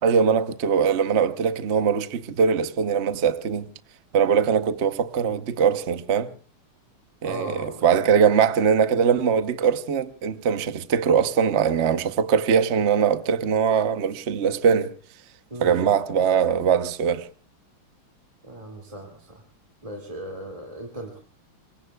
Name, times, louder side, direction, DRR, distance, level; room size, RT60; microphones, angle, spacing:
voice 1, 0.0-3.7 4.1-6.3 7.2-14.9 15.6-17.3, right 7 dB, 50° right, 0.8 m, -21 dB
voice 2, 7.2-7.8 15.5-15.9 18.4-19.4 19.8-21.2, right 1 dB, 15° right, 2.3 m, -37 dB
27.0 x 23.0 x 2.3 m
omnidirectional pair, 2.3 m